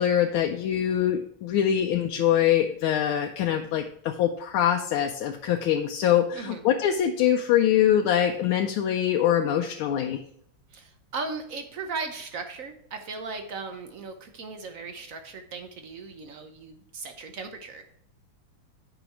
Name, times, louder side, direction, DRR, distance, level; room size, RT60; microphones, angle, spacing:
voice 1, 0.0-10.2, left 10 dB, 85° left, 3 dB, 1.5 m, -24 dB
voice 2, 6.3-6.6 10.7-17.8, right 4 dB, 60° right, 6 dB, 0.9 m, -37 dB
8.8 x 5.1 x 4.5 m, 0.69 s
omnidirectional pair, 2.2 m